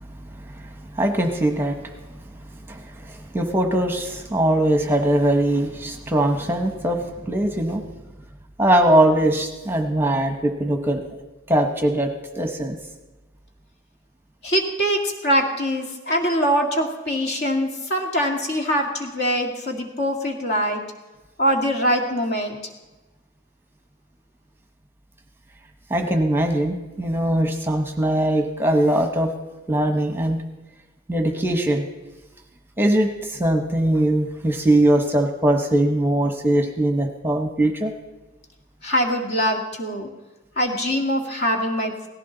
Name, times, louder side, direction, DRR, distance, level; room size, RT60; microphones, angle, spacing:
voice 1, 0.3-1.8 2.7-7.9 8.6-11.0 11.5-12.8 25.9-29.3 29.7-30.4 31.1-31.8 32.8-37.9, right 1 dB, 10° right, 4 dB, 1.0 m, -21 dB
voice 2, 14.4-20.8 21.4-22.6 38.8-40.1 40.6-41.9, equal, 50° left, 2 dB, 2.1 m, -23 dB
17.5 x 15.5 x 3.9 m, 1.1 s
head